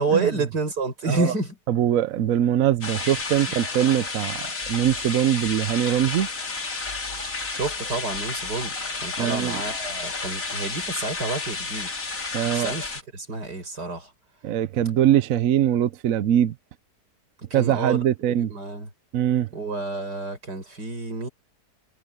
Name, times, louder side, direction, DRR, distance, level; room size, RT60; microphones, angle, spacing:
voice 1, 0.0-1.6 3.4-3.5 7.5-8.7 9.0-11.9 12.5-14.1 17.5-18.9 19.5-21.3, right 3 dB, 80° right, 6.5 m, -29 dB
voice 2, 1.7-6.3 9.2-9.6 12.3-12.7 14.4-16.5 17.5-18.5 19.1-19.5, right 11 dB, 65° right, 1.0 m, -22 dB
sound 1, 2.8-13.0, left 3 dB, 55° left, 2.9 m, -31 dB
omnidirectional pair, 1.7 m